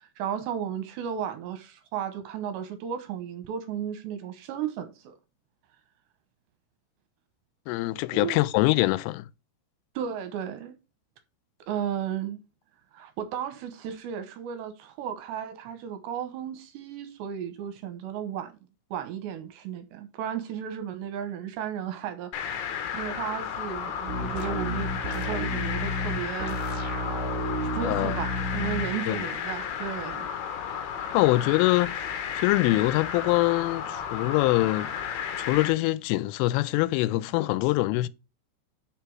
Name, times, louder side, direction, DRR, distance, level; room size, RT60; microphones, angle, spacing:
voice 1, 0.0-5.1 8.1-8.4 10.0-10.7 11.7-12.4 12.9-18.5 18.9-26.6 27.8-30.3 31.0-31.2, right 9 dB, 75° right, 2.9 m, -34 dB
voice 2, 7.7-9.3 27.8-28.2 29.1-29.3 31.1-32.0 32.4-34.9 35.4-38.1, left 19 dB, 85° left, 3.1 m, -24 dB
sound 1, 22.3-35.7, left 8 dB, 70° left, 2.6 m, -33 dB
sound 2, 24.1-28.9, left 1 dB, 20° right, 2.5 m, -31 dB
6.7 x 6.5 x 4.6 m
omnidirectional pair, 5.6 m